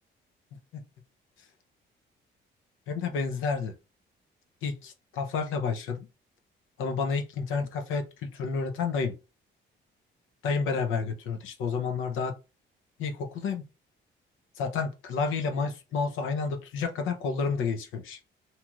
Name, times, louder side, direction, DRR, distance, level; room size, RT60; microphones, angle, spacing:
voice 1, 2.9-3.7 4.6-6.1 6.8-9.2 10.4-12.4 13.0-13.6 14.6-18.2, left 5 dB, 85° left, 0.7 m, -30 dB
2.9 x 2.8 x 2.3 m
cardioid pair, 90°, 20 cm